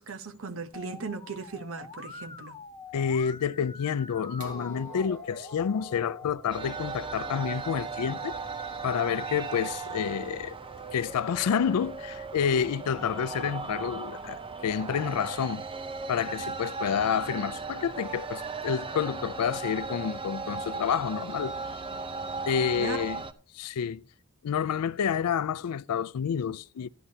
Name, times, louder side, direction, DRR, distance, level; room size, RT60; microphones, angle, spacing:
voice 1, 0.0-2.6 22.8-23.0, right 4 dB, 60° right, 0.8 m, -37 dB
Musical instrument, 0.7-6.3, left 5 dB, 20° left, 0.6 m, -45 dB
voice 2, 2.9-8.3 8.8-10.6 10.9-15.6 16.1-21.5 22.5-23.2 23.5-24.0 24.4-26.9, left 7 dB, 90° left, 0.4 m, -29 dB
sound 1, 4.4-10.3 11.4-11.5, right 3 dB, 85° right, 2.1 m, -49 dB
sound 2, 6.5-23.3, right 4 dB, 25° right, 0.5 m, -37 dB
13.5 x 10.0 x 2.7 m
head